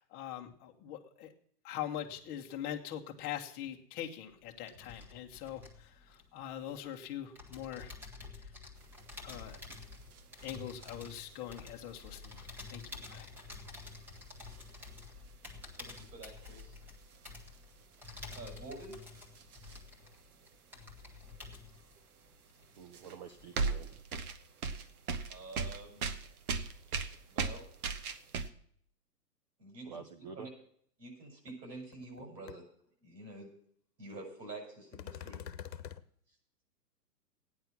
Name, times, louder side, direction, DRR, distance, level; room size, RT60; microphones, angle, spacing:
voice 1, 0.0-1.3 1.6-7.9 9.2-9.6 10.4-13.3, left 10 dB, 20° left, 3 dB, 1.0 m, -42 dB
sound 1, 4.3-6.9 7.3-23.0 23.3-24.0, left 3 dB, 5° right, 1.0 m, -50 dB
sound 2, 8.8-20.5 21.0-22.0 22.5-28.5, right 4 dB, 60° right, 1.2 m, -41 dB
voice 2, 15.7-16.8 18.3-19.0 25.3-26.2 27.3-27.7 29.6-30.0 30.3-30.5 31.0-32.6 33.0-33.5 34.0-35.5, right 2 dB, 85° right, 1 dB, 6.9 m, -47 dB
voice 3, 22.8-23.9 29.8-30.5, right 6 dB, 30° right, 7 dB, 0.5 m, -48 dB
sound 3, 31.5-31.6 31.9-32.2 32.5-32.6 34.9-36.0, left 9 dB, 85° left, 1.0 m, -44 dB
14.5 x 9.7 x 5.9 m, 0.63 s
hypercardioid pair, 155°, 49 cm